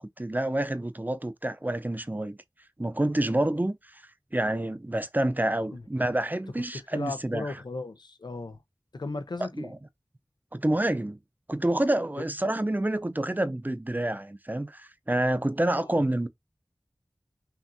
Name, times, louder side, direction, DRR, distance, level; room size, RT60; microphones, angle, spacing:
voice 1, 0.2-2.4 2.8-4.0 4.3-7.5 9.6-9.7 10.5-11.2 11.5-16.3, right 1 dB, 25° right, 0.5 m, -28 dB
voice 2, 6.7-8.6 8.9-9.7 15.7-16.0, left 3 dB, 85° left, 0.7 m, -36 dB
5.7 x 2.5 x 2.7 m
wide cardioid pair, 40°, 7 cm